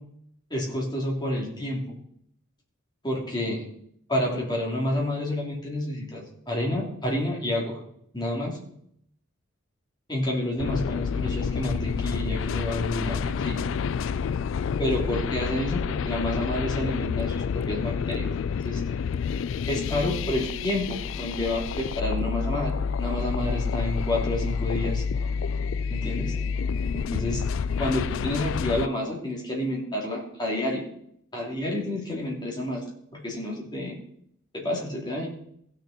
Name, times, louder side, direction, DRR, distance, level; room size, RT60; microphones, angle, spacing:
voice 1, 0.5-1.9 3.0-3.6 4.1-7.8 8.1-8.6 10.1-13.6 14.8-18.3 18.6-18.8 19.7-25.0 25.9-26.3 26.9-27.4 27.8-30.8 31.3-32.8 33.1-34.0 34.5-35.3, left 1 dB, 20° left, -3 dB, 3.2 m, -29 dB
sound 1, 10.6-28.9, left 6 dB, 65° left, 0.3 m, -29 dB
16.0 x 6.7 x 4.3 m, 0.69 s
head